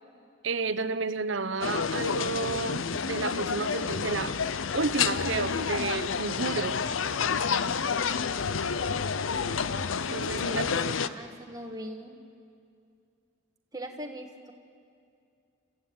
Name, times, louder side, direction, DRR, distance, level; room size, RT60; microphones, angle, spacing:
voice 1, 0.4-4.4 4.7-6.8 10.1-10.7, right 4 dB, 75° right, 13 dB, 0.9 m, -31 dB
sound 1, 1.6-11.1, left 6 dB, 90° left, 0.7 m, -29 dB
voice 2, 10.5-12.2 13.7-14.5, right 1 dB, 20° right, 3 dB, 1.5 m, -40 dB
28.5 x 14.5 x 9.5 m, 2.4 s
head